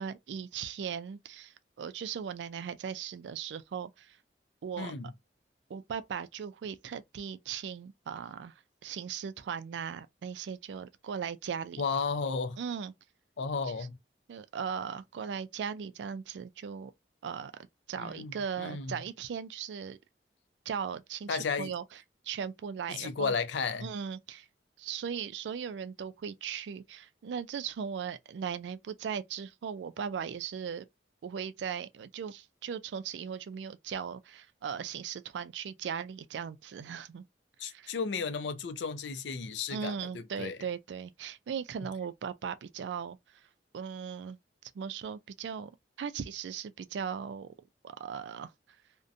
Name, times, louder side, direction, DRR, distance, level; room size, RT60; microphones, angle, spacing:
voice 1, 0.0-4.2 4.6-4.9 5.7-8.5 8.8-11.8 12.6-12.9 14.3-16.9 17.2-17.5 17.9-20.0 20.7-21.8 22.2-23.3 23.8-24.5 24.8-30.8 31.2-37.2 37.7-37.9 39.7-43.2 43.7-44.4 44.7-45.7 46.0-47.5 47.8-48.5, right 7 dB, 80° right, 0.3 m, -38 dB
voice 2, 4.8-5.1 11.8-12.6 13.4-14.0 18.0-19.0 21.3-21.7 22.9-23.9 37.6-40.6, left 5 dB, 85° left, 0.5 m, -34 dB
2.6 x 2.1 x 2.5 m
head